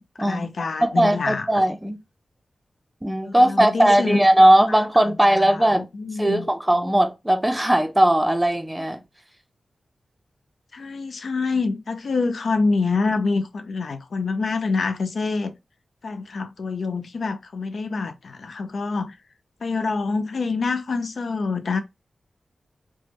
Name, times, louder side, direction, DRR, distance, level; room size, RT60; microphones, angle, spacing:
voice 1, 0.0-1.6 3.3-4.2 4.7-6.5 10.7-15.5 16.0-19.2 19.6-21.8, left 4 dB, 75° left, 0.3 m, -26 dB
voice 2, 0.8-2.0 3.0-5.8 6.2-9.0, right 1 dB, 10° right, 0.5 m, -18 dB
3.3 x 2.1 x 3.0 m
wide cardioid pair, 80°, 0 cm